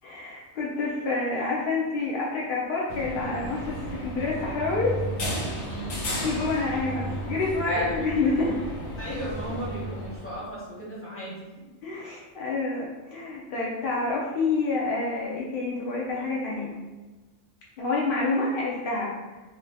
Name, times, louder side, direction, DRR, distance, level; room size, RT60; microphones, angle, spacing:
voice 1, 0.0-5.0 6.2-8.6 11.8-16.8 17.8-19.1, left 3 dB, 60° left, -5 dB, 0.6 m, -28 dB
sound 1, 2.9-10.4, right 1 dB, 90° left, 1.2 m, -33 dB
voice 2, 5.7-6.0 7.7-7.9 9.0-11.5, equal, 15° left, -6 dB, 0.5 m, -36 dB
2.6 x 2.3 x 3.3 m, 1.2 s
omnidirectional pair, 1.4 m